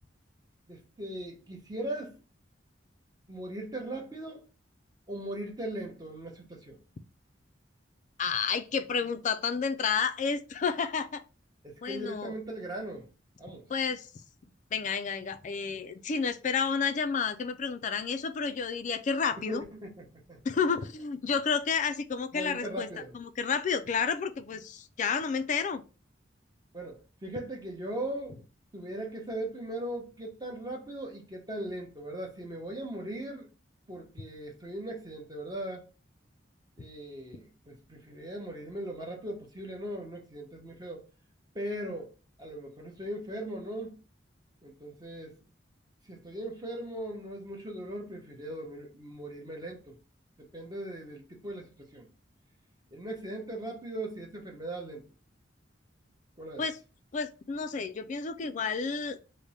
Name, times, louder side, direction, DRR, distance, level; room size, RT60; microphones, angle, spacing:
voice 1, 0.7-2.2 3.3-4.4 5.1-6.8 11.6-13.1 13.4-13.7 19.5-20.4 22.3-23.2 26.7-28.4 28.7-33.5 33.9-35.9 36.8-41.0 41.5-42.1 42.4-44.0 44.6-45.4 46.1-50.0 50.4-52.1 52.9-55.1 56.4-56.7, right 1 dB, 20° right, 0.9 m, -39 dB
voice 2, 8.2-11.2 11.8-12.3 13.7-14.1 14.7-19.6 20.4-22.9 23.1-25.8 56.6-56.8 57.1-59.2, left 5 dB, 40° left, 0.3 m, -30 dB
3.3 x 2.1 x 4.1 m
head